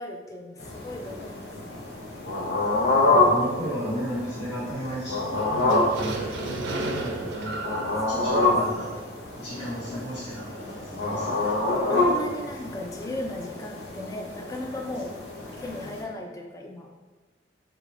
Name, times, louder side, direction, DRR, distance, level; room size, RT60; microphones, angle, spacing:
voice 1, 0.0-1.9 6.0-7.2 8.0-8.9 11.4-15.2 15.6-16.9, left 1 dB, 20° left, 2 dB, 0.3 m, -38 dB
sound 1, 0.6-16.0, left 2 dB, 70° left, 0.7 m, -27 dB
voice 2, 3.1-7.5 8.2-8.9 9.3-11.5, equal, 90° left, -9 dB, 1.3 m, -34 dB
sound 2, 5.4-9.5, right 2 dB, 90° right, 0.4 m, -34 dB
3.2 x 2.3 x 3.6 m, 1.3 s
head